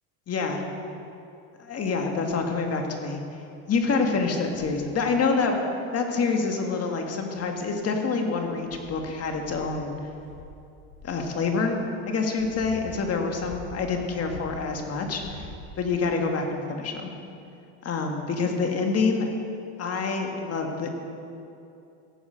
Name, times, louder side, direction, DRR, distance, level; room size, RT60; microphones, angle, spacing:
voice 1, 0.3-0.6 1.6-3.2 3.7-5.6 5.9-9.9 11.0-11.8 12.1-15.5 15.8-17.1 17.8-19.3 19.8-20.9, left 4 dB, 35° left, 3 dB, 2.0 m, -27 dB
sound 1, 2.3-2.6 3.2-3.3 3.7-4.0 4.5-4.9 6.3-6.4 7.2-7.9 8.4-11.2 12.0-14.7 15.1-16.0 16.8-16.9, left 2 dB, 75° left, 3.3 m, -45 dB
17.0 x 7.2 x 6.3 m, 2.7 s
supercardioid pair, 100°, 43 cm